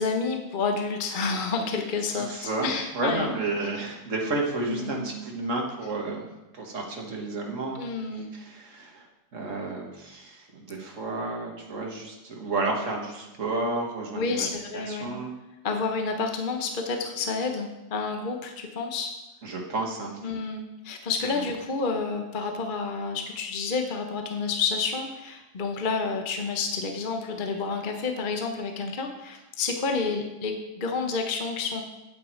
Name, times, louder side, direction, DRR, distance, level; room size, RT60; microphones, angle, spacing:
voice 1, 0.0-3.3 4.6-5.1 7.7-8.3 14.2-15.1 15.6-19.1 20.2-31.8, left 4 dB, 40° left, 4 dB, 0.8 m, -29 dB
voice 2, 2.2-6.3 6.5-7.8 8.2-9.1 9.3-14.5 14.7-15.3 19.4-20.2, right 2 dB, 45° right, 0 dB, 1.9 m, -31 dB
8.7 x 8.4 x 4.5 m, 1.0 s
omnidirectional pair, 1.9 m